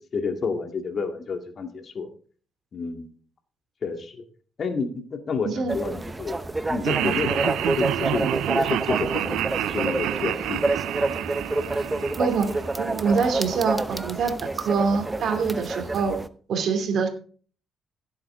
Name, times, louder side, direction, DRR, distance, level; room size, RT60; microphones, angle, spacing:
voice 1, 0.1-2.1 2.7-3.1 3.8-4.3 4.6-6.4 6.6-10.6, left 4 dB, 50° left, 5 dB, 2.1 m, -30 dB
voice 2, 5.4-5.8 7.0-7.1 12.2-12.5 12.8-16.2 16.5-17.1, right 5 dB, 65° right, 7 dB, 2.6 m, -25 dB
sound 1, 5.7-16.3, right 2 dB, 15° right, 0.9 m, -29 dB
Laughter, 6.8-13.0, right 13 dB, 90° right, 0.5 m, -28 dB
16.0 x 7.8 x 3.7 m, 0.43 s
cardioid pair, 90°, 0 cm